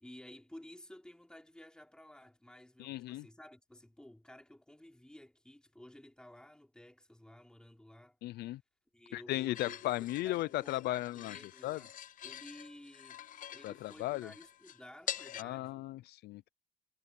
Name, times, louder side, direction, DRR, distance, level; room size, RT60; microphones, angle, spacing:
voice 1, 0.0-8.2 8.9-11.9 12.2-13.2 13.5-15.9, left 1 dB, 5° left, 4.2 m, -54 dB
voice 2, 2.8-3.2 8.2-8.6 9.1-11.3 11.6-11.8 13.6-14.3 15.4-16.5, left 16 dB, 75° left, 0.5 m, -36 dB
sound 1, 9.5-15.4, left 10 dB, 50° left, 0.8 m, -46 dB
cardioid pair, 110°, 17 cm